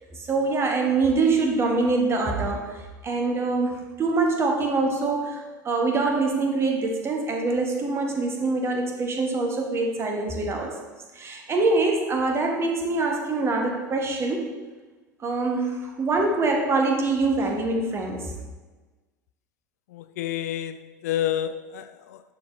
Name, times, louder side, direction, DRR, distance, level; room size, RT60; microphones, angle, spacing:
voice 1, 0.3-10.7 11.1-14.5 15.2-18.4, right 3 dB, 25° right, 2 dB, 1.2 m, -24 dB
voice 2, 19.9-22.2, left 11 dB, 60° left, 10 dB, 0.4 m, -29 dB
11.0 x 4.1 x 3.1 m, 1.3 s
figure-of-eight pair, 75°, 10 cm